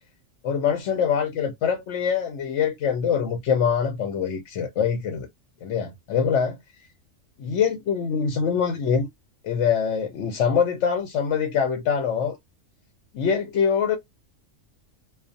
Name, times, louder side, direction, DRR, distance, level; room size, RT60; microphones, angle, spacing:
voice 1, 0.4-5.3 5.6-6.6 7.4-9.1 9.4-12.4 13.1-14.0, left 7 dB, 65° left, 0.8 m, -24 dB
2.3 x 2.2 x 2.5 m
omnidirectional pair, 1.4 m